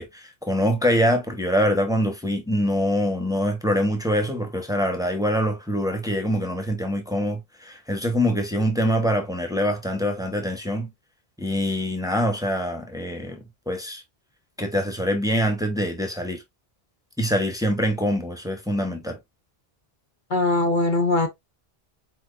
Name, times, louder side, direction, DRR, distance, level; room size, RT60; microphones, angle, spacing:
voice 1, 0.0-10.9 11.4-14.0 14.6-16.4 17.2-19.2, equal, 5° right, 1.2 m, -24 dB
voice 2, 20.3-21.3, left 2 dB, 50° left, 1.0 m, -21 dB
4.6 x 4.4 x 2.6 m
omnidirectional pair, 1.1 m